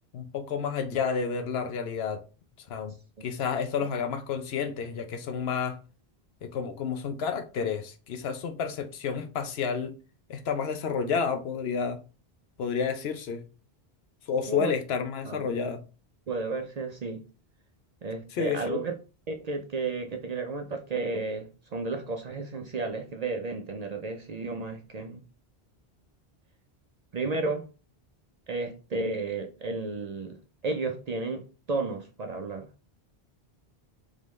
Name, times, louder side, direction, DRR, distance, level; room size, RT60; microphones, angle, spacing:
voice 1, 0.1-2.2 2.7-2.9 3.2-5.8 6.4-9.9 10.3-12.0 12.6-13.4 14.3-15.8 18.3-18.8, left 6 dB, 75° left, 0.9 m, -30 dB
voice 2, 16.3-17.3 18.0-19.0 19.3-25.2 27.1-27.7 28.5-30.4 30.6-31.4 31.7-32.7, right 3 dB, 50° right, 0.5 m, -32 dB
3.7 x 3.6 x 3.1 m
omnidirectional pair, 1.1 m